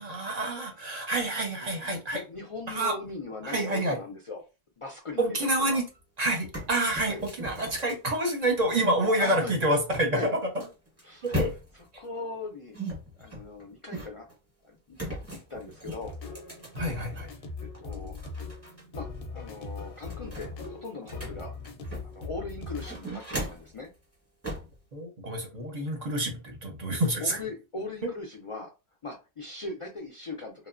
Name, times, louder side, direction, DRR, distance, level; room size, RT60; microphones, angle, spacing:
voice 1, 0.0-2.2 2.7-2.9 3.4-4.0 5.2-5.8 6.2-10.2 11.2-11.5 16.7-17.3 24.9-27.4, right 1 dB, 50° right, 0.7 m, -28 dB
voice 2, 2.1-4.4 4.8-5.8 7.0-7.2 9.2-9.5 10.1-10.3 11.0-11.4 11.7-12.8 13.2-14.3 14.6-15.0 15.3-16.1 17.4-17.5 17.8-18.2 18.9-21.6 22.1-23.9 25.7-26.1 27.2-28.7 29.0-30.7, left 3 dB, 50° left, 0.4 m, -39 dB
sound 1, 5.9-6.0 6.3-9.0 9.9-12.0 12.7-14.4 14.9-17.3 17.7-18.8 19.1-19.2 19.6-22.3 22.7-23.8 24.4-24.8, equal, 15° right, 0.8 m, -38 dB
sound 2, 16.0-23.0, left 4 dB, 75° left, 0.8 m, -40 dB
2.9 x 2.0 x 2.4 m
omnidirectional pair, 1.0 m